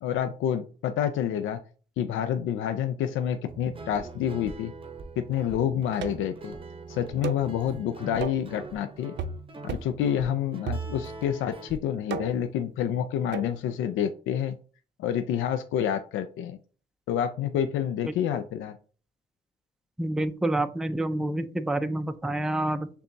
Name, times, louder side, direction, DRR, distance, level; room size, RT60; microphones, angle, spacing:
voice 1, 0.0-1.6 2.0-4.7 5.2-6.5 6.9-9.1 9.6-14.6 15.0-16.6 17.1-18.8, left 9 dB, 85° left, 8 dB, 0.4 m, -28 dB
Guitar, 3.5-11.8, right 3 dB, 25° right, 0.7 m, -43 dB
sound 1, 6.0-6.4 7.2-7.5 8.2-8.5 9.2-9.4 9.7-10.0 10.7-11.2 12.1-12.5 13.3-13.6, right 6 dB, 65° right, 0.5 m, -34 dB
voice 2, 20.0-22.9, right 1 dB, 5° right, 10 dB, 0.4 m, -28 dB
6.6 x 2.3 x 2.6 m, 0.39 s
cardioid pair, 90°, 20 cm